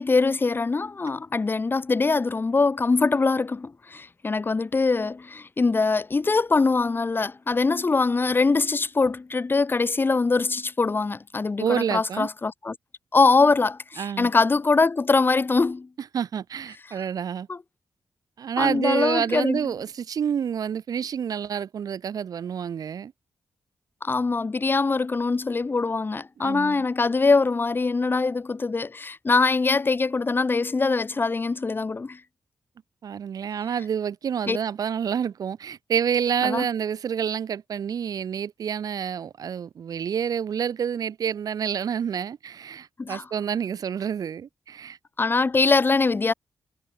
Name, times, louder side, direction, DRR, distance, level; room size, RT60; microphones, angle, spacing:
voice 1, 0.0-12.8 13.1-15.9 17.5-17.6 18.6-19.7 24.0-32.2 34.5-34.6 36.4-36.7 43.0-43.2 45.2-46.3, left 3 dB, 35° left, 0.8 m, -23 dB
voice 2, 11.6-12.3 14.0-14.3 16.1-17.5 18.4-23.1 26.4-26.8 33.0-45.0, right 8 dB, 70° right, 3.0 m, -28 dB
cardioid pair, 55°, 6 cm